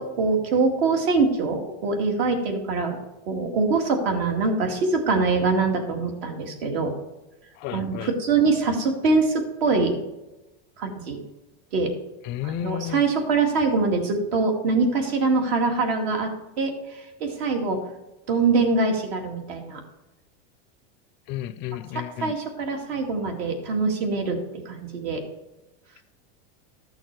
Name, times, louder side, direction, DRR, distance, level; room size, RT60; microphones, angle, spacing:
voice 1, 0.0-3.0 3.3-6.9 7.7-9.9 10.8-11.2 11.7-11.9 12.4-16.3 16.6-17.8 18.3-19.8 21.9-24.4 24.7-25.2, right 4 dB, 70° right, 2.4 m, -24 dB
voice 2, 7.6-8.1 12.2-13.0 21.3-22.4, left 11 dB, 35° left, 0.4 m, -32 dB
13.5 x 6.5 x 4.6 m
supercardioid pair, 155°, 31 cm